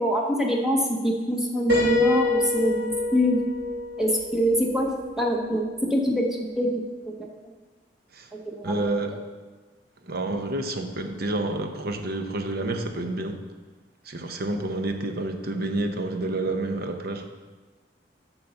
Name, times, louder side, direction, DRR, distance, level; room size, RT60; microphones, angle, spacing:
voice 1, 0.0-3.4 4.0-4.9 5.2-6.8 7.2-7.3 8.3-8.8, equal, 5° right, 0 dB, 0.9 m, -24 dB
Piano, 1.7-5.4, left 1 dB, 75° right, 2.7 m, -26 dB
voice 2, 8.6-9.2 10.0-13.4 14.0-17.3, right 2 dB, 60° right, 6 dB, 0.8 m, -29 dB
8.2 x 4.0 x 6.8 m, 1.3 s
head